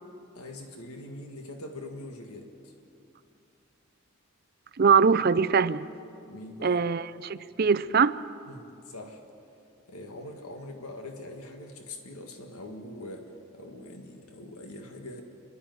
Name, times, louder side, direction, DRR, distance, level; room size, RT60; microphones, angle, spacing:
voice 1, 0.3-2.7 6.3-6.8 8.5-9.2 9.9-15.2, left 1 dB, 85° left, 3 dB, 1.8 m, -43 dB
voice 2, 4.8-5.9 6.6-8.2, right 5 dB, 45° right, 16 dB, 0.5 m, -22 dB
28.0 x 12.0 x 9.3 m, 2.7 s
head